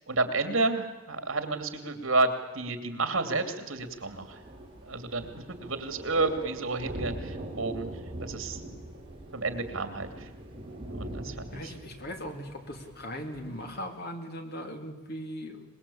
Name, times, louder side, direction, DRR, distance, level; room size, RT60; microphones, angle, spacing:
voice 1, 0.1-4.4 4.8-7.9 8.2-8.6 9.3-10.3 11.0-11.6, right 3 dB, 80° right, 8 dB, 2.7 m, -30 dB
Thunder, 3.8-13.8, right 1 dB, 25° right, 4.8 m, -42 dB
voice 2, 11.5-15.7, equal, 50° left, 5 dB, 2.9 m, -39 dB
24.0 x 21.0 x 8.6 m, 1.2 s
head